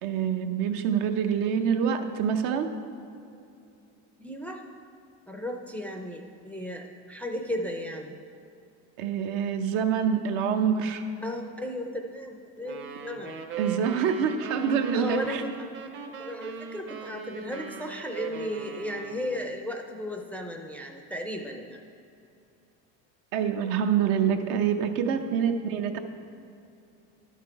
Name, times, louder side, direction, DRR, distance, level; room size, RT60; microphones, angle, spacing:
voice 1, 0.0-2.7 9.0-11.0 13.6-15.4 23.3-26.0, right 7 dB, 75° right, 7 dB, 0.8 m, -26 dB
voice 2, 4.2-4.6 5.3-8.2 11.2-13.4 14.9-15.6 16.2-21.8 25.2-25.3, left 1 dB, 5° left, 1 dB, 0.4 m, -35 dB
sound 1, 12.6-19.5, right 6 dB, 35° right, 0.7 m, -40 dB
11.5 x 5.9 x 4.6 m, 2.6 s
cardioid pair, 140°, 33 cm